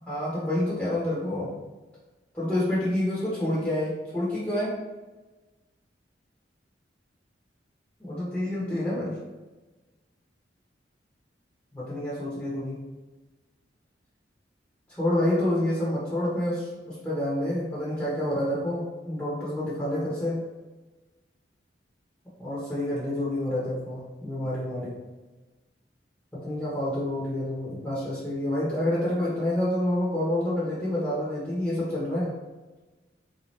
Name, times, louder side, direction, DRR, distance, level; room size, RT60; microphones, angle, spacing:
voice 1, 0.0-1.6 2.3-4.7 8.0-9.1 11.7-12.8 14.9-20.4 22.4-25.0 26.3-32.3, left 1 dB, 10° left, -9 dB, 1.0 m, -28 dB
3.9 x 2.8 x 3.2 m, 1.2 s
head